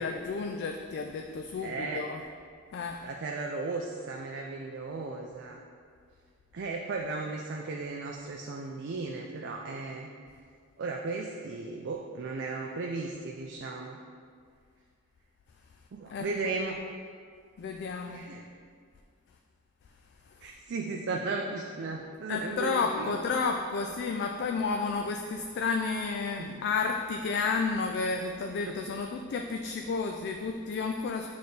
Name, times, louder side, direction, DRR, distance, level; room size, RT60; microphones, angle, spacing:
voice 1, 0.0-2.2 2.7-3.0 16.1-16.7 17.6-18.2 22.3-31.3, left 4 dB, 50° left, 3 dB, 0.3 m, -31 dB
voice 2, 1.6-2.1 3.0-5.6 6.5-10.1 10.8-14.0 15.9-16.8 18.0-18.5 20.4-23.2 26.4-26.6 28.7-28.8, right 3 dB, 55° right, 1 dB, 0.4 m, -35 dB
8.4 x 3.5 x 4.0 m, 2.1 s
head